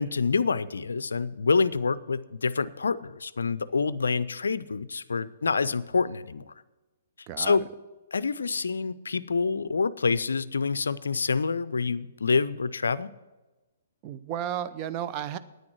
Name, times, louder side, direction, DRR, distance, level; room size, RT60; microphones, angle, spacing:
voice 1, 0.0-6.5 7.4-7.7 8.1-13.1, left 4 dB, 70° left, 17 dB, 0.4 m, -27 dB
voice 2, 7.3-7.6 14.0-15.4, right 10 dB, 30° right, 12 dB, 0.5 m, -33 dB
9.7 x 9.4 x 6.0 m, 1.1 s
figure-of-eight pair, 120°, 0 cm